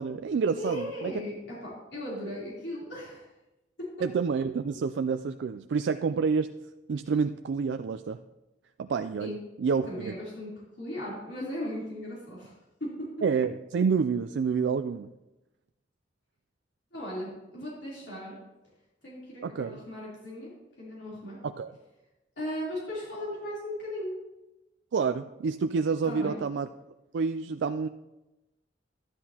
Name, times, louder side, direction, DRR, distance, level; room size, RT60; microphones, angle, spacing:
voice 1, 0.0-1.1 4.0-6.5 6.9-8.2 8.8-9.3 9.6-10.2 13.2-15.1 19.4-19.8 21.4-21.7 24.9-26.7 27.1-27.9, right 5 dB, 80° right, 8 dB, 0.3 m, -28 dB
voice 2, 0.6-3.3 3.8-3.9 9.2-9.4 9.8-10.5 10.8-12.5 12.8-13.1 16.9-18.4 19.0-20.5 20.8-21.4 22.4-24.1 26.0-26.4, left 1 dB, 80° left, -7 dB, 3.3 m, -37 dB
12.5 x 10.5 x 2.9 m, 0.99 s
head